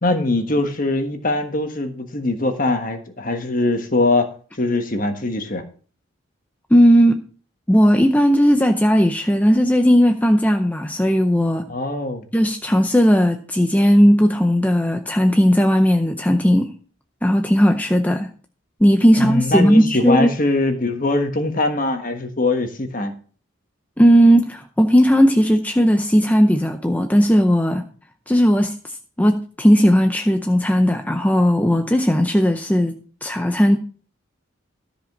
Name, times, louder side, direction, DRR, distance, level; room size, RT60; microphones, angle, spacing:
voice 1, 0.0-4.3 4.6-5.6 11.7-12.3 19.2-23.1, left 2 dB, 40° left, 6 dB, 1.4 m, -22 dB
voice 2, 6.7-7.2 7.7-11.6 12.3-16.7 17.2-18.3 18.8-20.3 24.0-27.9 28.3-33.8, equal, 5° left, 5 dB, 0.6 m, -16 dB
13.5 x 5.1 x 6.1 m, 0.43 s
head